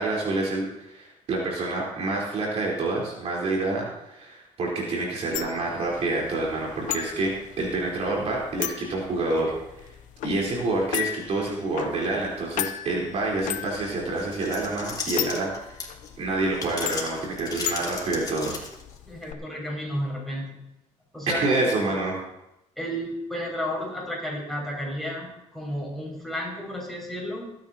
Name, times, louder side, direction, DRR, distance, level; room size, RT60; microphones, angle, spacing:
voice 1, 0.0-7.3 7.6-9.9 10.2-15.8 16.2-18.6 21.3-22.2, right 2 dB, 55° right, -3 dB, 4.0 m, -27 dB
sound 1, 5.3-19.3, left 12 dB, 75° left, 0.7 m, -36 dB
sound 2, 14.2-16.1 16.5-19.0, left 4 dB, 30° left, 2.8 m, -35 dB
voice 2, 19.1-20.5 21.1-21.5 22.8-27.6, equal, ahead, -3 dB, 5.8 m, -32 dB
23.5 x 9.1 x 2.9 m, 0.91 s
cardioid pair, 115°, 13 cm